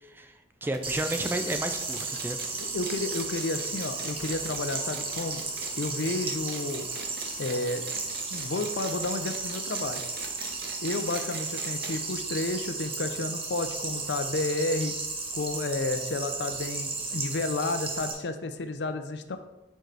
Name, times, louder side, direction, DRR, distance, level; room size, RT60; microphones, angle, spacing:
voice 1, 0.0-2.4, right 1 dB, 10° right, 7 dB, 0.3 m, -32 dB
sound 1, 0.7-12.0 12.3-12.4 12.7-12.8 13.7-13.8, right 4 dB, 60° right, 0.8 m, -43 dB
sound 2, 0.8-18.1, right 3 dB, 30° right, 0.9 m, -34 dB
voice 2, 2.6-5.4 5.8-6.9 7.4-10.0 10.8-14.9 15.3-19.4, left 2 dB, 70° left, 9 dB, 0.5 m, -31 dB
6.6 x 4.7 x 4.0 m, 1.0 s
head